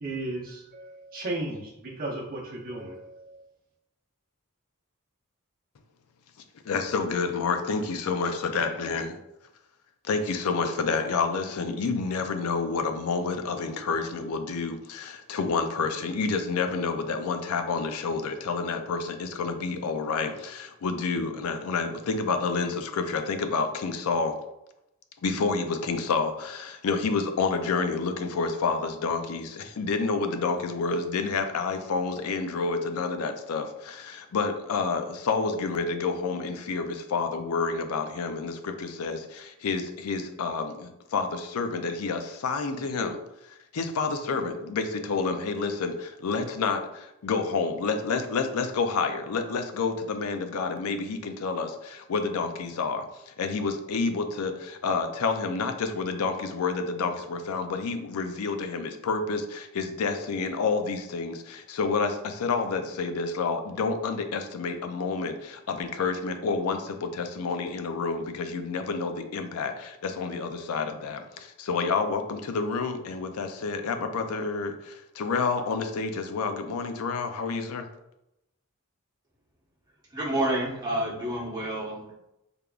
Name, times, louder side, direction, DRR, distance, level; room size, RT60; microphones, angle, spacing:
voice 1, 0.0-3.5, right 2 dB, 40° right, -4 dB, 0.7 m, -35 dB
voice 2, 6.6-9.2 10.0-24.4 25.2-43.2 43.4-77.9, left 4 dB, 80° left, 7 dB, 0.4 m, -29 dB
voice 3, 80.1-82.1, right 1 dB, 20° right, -6 dB, 1.1 m, -29 dB
3.4 x 3.4 x 2.4 m, 0.87 s
head